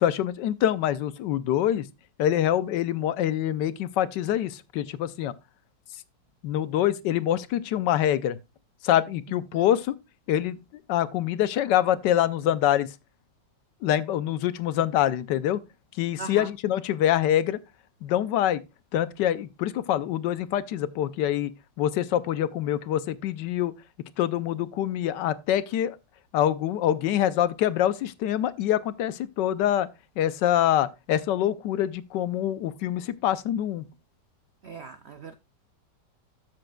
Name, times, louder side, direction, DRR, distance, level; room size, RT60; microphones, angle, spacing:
voice 1, 0.0-1.8 2.2-5.3 6.4-8.4 8.8-10.0 10.3-10.6 10.9-12.9 13.8-15.6 16.0-17.6 18.0-18.6 18.9-21.5 21.8-23.7 24.2-26.0 26.3-29.9 30.2-33.8, left 11 dB, 80° left, 1.3 m, -25 dB
voice 2, 16.2-16.5 34.6-35.3, right 4 dB, 75° right, 0.6 m, -39 dB
13.0 x 7.5 x 2.2 m
omnidirectional pair, 1.9 m